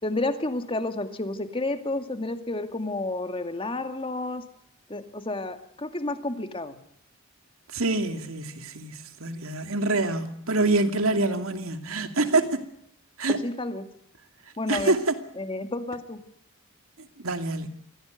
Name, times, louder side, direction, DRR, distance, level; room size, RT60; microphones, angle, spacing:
voice 1, 0.0-4.5 4.9-6.8 13.3-13.9 14.6-14.9 15.4-16.2, left 2 dB, 25° left, 2.2 m, -30 dB
voice 2, 7.7-12.6 13.2-13.4 14.7-15.1 17.2-17.7, right 2 dB, 75° right, 2.6 m, -26 dB
24.0 x 16.5 x 9.3 m
head